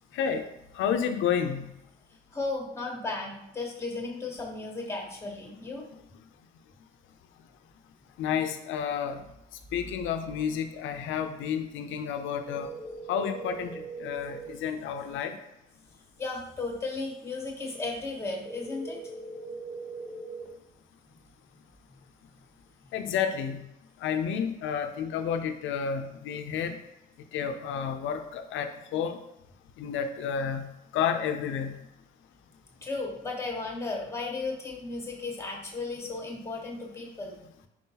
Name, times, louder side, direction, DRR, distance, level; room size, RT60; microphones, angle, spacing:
voice 1, 0.1-0.4 0.8-1.7 8.2-9.2 9.7-12.7 13.1-15.3 22.9-23.6 24.0-26.8 27.3-29.2 29.8-31.8, left 7 dB, 80° left, 7 dB, 0.5 m, -30 dB
voice 2, 2.3-5.8 16.2-19.0 32.8-37.3, left 3 dB, 15° left, 0 dB, 1.2 m, -35 dB
sound 1, 12.5-14.5 18.5-20.5, right 3 dB, 10° right, 1.4 m, -40 dB
4.7 x 3.7 x 2.8 m, 0.85 s
cardioid pair, 90°, 20 cm